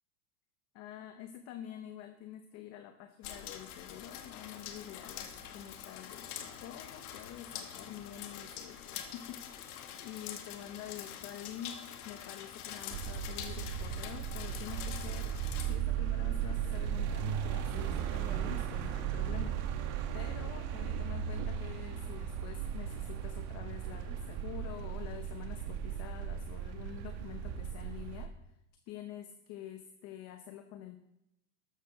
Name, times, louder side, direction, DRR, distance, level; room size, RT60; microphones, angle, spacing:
voice 1, 0.7-28.3 28.9-31.0, left 11 dB, 35° left, 7 dB, 0.8 m, -47 dB
sound 1, 3.2-15.8, left 9 dB, 70° left, 1.8 m, -45 dB
sound 2, 12.9-28.3, right 9 dB, 45° right, 1.4 m, -36 dB
13.5 x 12.0 x 3.9 m, 0.84 s
supercardioid pair, 145°, 47 cm